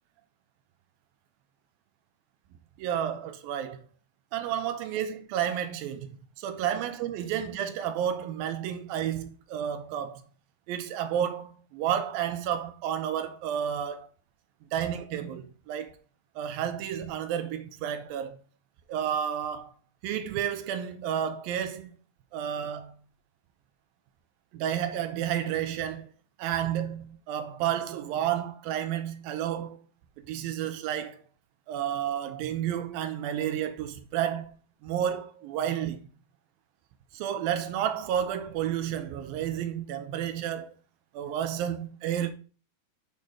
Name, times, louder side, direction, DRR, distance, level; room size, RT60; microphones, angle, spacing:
voice 1, 2.8-3.8 4.3-6.1 6.4-10.2 10.7-14.1 14.7-15.9 16.4-18.4 18.9-19.7 20.0-22.0 22.3-22.9 24.5-26.1 26.4-29.9 30.3-31.2 31.7-36.0 37.1-40.7 41.1-42.3, right 10 dB, 85° right, 2.6 m, -31 dB
8.7 x 4.1 x 4.9 m
omnidirectional pair, 4.0 m